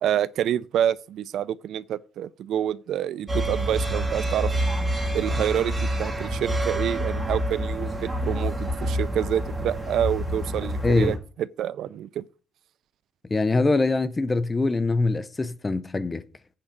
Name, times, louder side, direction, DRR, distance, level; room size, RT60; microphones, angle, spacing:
voice 1, 0.0-4.5 5.1-12.2, right 10 dB, 70° right, 0.4 m, -27 dB
sound 1, 3.3-11.2, right 1 dB, 15° right, 2.4 m, -27 dB
voice 2, 10.8-11.2 13.3-16.2, left 3 dB, 20° left, 0.6 m, -23 dB
8.7 x 4.9 x 7.1 m
cardioid pair, 130°, 0 cm